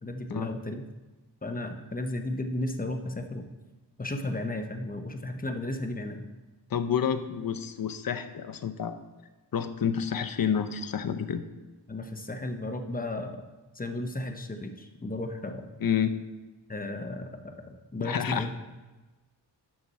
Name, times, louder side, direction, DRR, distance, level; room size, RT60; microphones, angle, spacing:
voice 1, 0.0-0.9 1.4-3.5 4.0-6.2 11.9-13.4 13.7-15.7 16.7-18.5, left 1 dB, 20° left, 6 dB, 0.9 m, -34 dB
voice 2, 6.7-9.0 9.5-11.4 15.8-16.2 18.0-18.5, left 8 dB, 55° left, 9 dB, 0.7 m, -29 dB
12.0 x 6.0 x 4.2 m, 1.2 s
wide cardioid pair, 90°, 42 cm